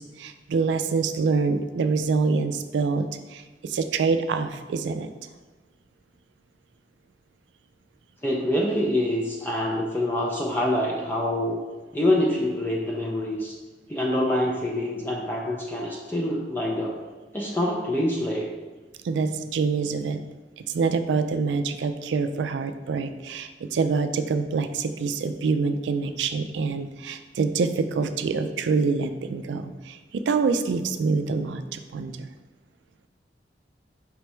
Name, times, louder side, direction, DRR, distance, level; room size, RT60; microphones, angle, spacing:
voice 1, 0.0-5.1 19.0-20.2 20.6-32.3, right 4 dB, 85° right, 9 dB, 0.3 m, -26 dB
voice 2, 8.2-11.6 11.9-13.5 13.9-16.9 17.3-18.5, left 1 dB, 10° left, -2 dB, 0.4 m, -25 dB
5.2 x 3.3 x 3.0 m, 1.2 s
head